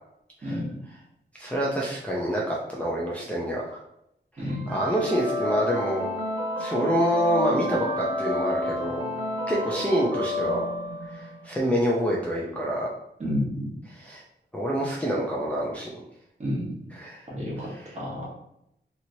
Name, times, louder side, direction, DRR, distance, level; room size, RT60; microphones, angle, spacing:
voice 1, 1.3-3.8 4.4-6.1 6.6-9.0 9.5-10.6 11.1-12.9 13.9-14.2 14.5-16.0 16.9-17.2 17.6-18.0, equal, 5° left, -5 dB, 0.4 m, -27 dB
voice 2, 4.4-4.7 13.2-13.7 16.4-16.7 17.3-17.7 17.9-18.3, left 1 dB, 35° right, -5 dB, 1.1 m, -29 dB
sound 1, 4.5-11.5, left 1 dB, 70° right, 0.6 m, -30 dB
2.9 x 2.9 x 2.6 m, 0.78 s
wide cardioid pair, 155°, 19 cm